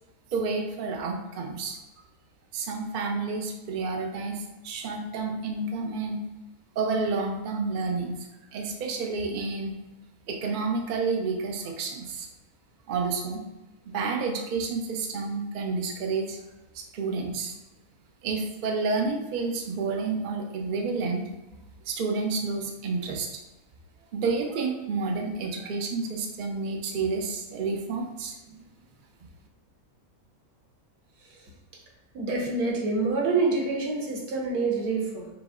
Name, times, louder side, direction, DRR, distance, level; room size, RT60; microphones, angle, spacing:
voice 1, 0.3-1.8 2.5-6.2 6.8-8.1 8.5-9.7 10.3-12.3 12.9-13.4 13.9-16.4 16.7-17.5 18.2-21.2 21.9-23.3 24.1-28.4, right 4 dB, 60° right, 2 dB, 0.5 m, -30 dB
voice 2, 32.1-35.3, right 3 dB, 75° right, -1 dB, 1.5 m, -26 dB
5.9 x 2.0 x 3.6 m, 1.1 s
omnidirectional pair, 1.6 m